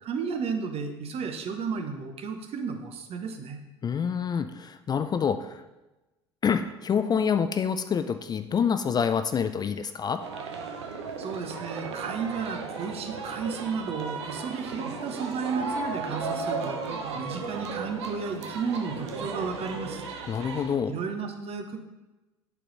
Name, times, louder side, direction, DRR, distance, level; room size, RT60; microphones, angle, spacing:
voice 1, 0.0-3.6 11.2-16.8 17.1-20.0 20.9-21.8, right 5 dB, 45° right, 6 dB, 1.0 m, -33 dB
voice 2, 3.8-5.6 6.4-10.2 20.3-20.9, left 7 dB, 30° left, 9 dB, 0.4 m, -27 dB
sound 1, 10.2-20.8, right 4 dB, 80° right, 0.8 m, -35 dB
8.2 x 4.2 x 4.0 m, 1.0 s
hypercardioid pair, 65°, 14 cm